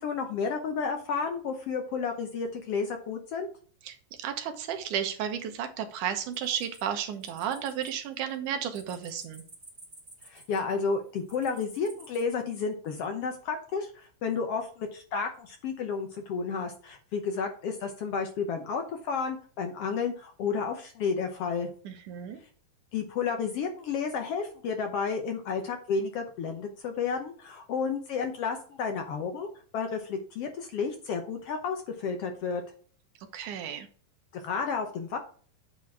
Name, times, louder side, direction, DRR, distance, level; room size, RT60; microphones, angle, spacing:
voice 1, 0.0-3.5 10.2-21.7 22.9-29.5 29.7-32.6 34.3-35.2, left 5 dB, 70° left, 5 dB, 1.4 m, -31 dB
voice 2, 3.8-9.4 21.8-22.4 33.3-33.9, right 9 dB, 70° right, 8 dB, 2.4 m, -33 dB
sound 1, 6.3-7.9 8.2-10.8 11.3-12.2, right 2 dB, 20° right, 1.8 m, -52 dB
9.0 x 4.1 x 4.7 m, 0.43 s
omnidirectional pair, 3.9 m